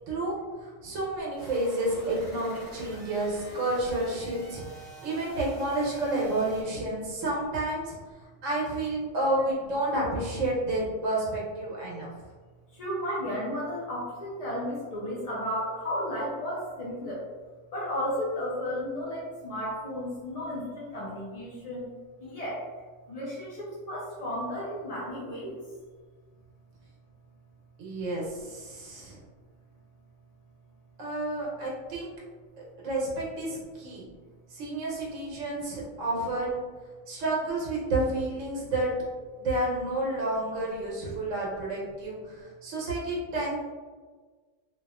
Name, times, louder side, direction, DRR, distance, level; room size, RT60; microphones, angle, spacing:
voice 1, 0.6-4.6 5.0-7.9 8.4-12.1 27.8-29.2 31.0-32.1 32.8-34.0 34.5-36.6 37.1-38.9 39.3-43.6, right 2 dB, 75° right, -4 dB, 1.1 m, -30 dB
sound 1, 1.4-6.6, right 1 dB, 40° left, 0.9 m, -47 dB
voice 2, 12.7-17.2 17.7-21.9 22.2-22.6 23.1-25.6, equal, 65° left, -6 dB, 0.3 m, -33 dB
2.9 x 2.3 x 2.3 m, 1.4 s
omnidirectional pair, 1.3 m